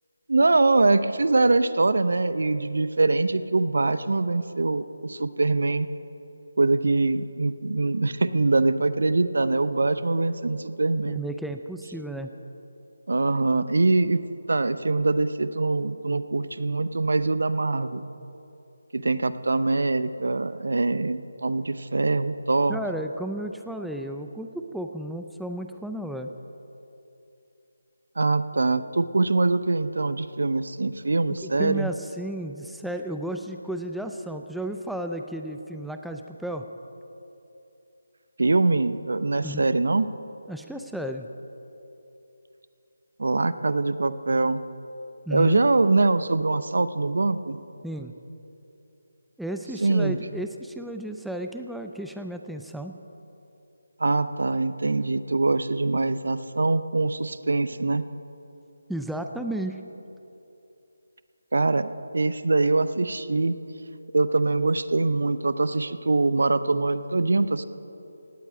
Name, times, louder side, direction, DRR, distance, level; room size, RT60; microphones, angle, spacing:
voice 1, 0.3-5.9 6.6-11.2 13.1-14.2 14.5-18.1 18.9-22.8 28.2-31.9 38.4-40.0 43.2-44.6 45.3-47.6 49.8-50.2 54.0-58.0 61.5-63.6 64.1-67.6, right 3 dB, 70° right, 13 dB, 0.7 m, -23 dB
voice 2, 11.1-12.3 22.7-26.3 31.3-36.7 39.4-39.6 40.5-41.3 45.3-45.6 47.8-48.1 49.4-52.9 58.9-59.8, right 1 dB, ahead, 5 dB, 0.5 m, -33 dB
17.5 x 8.1 x 8.8 m, 2.9 s
figure-of-eight pair, 160°, 0 cm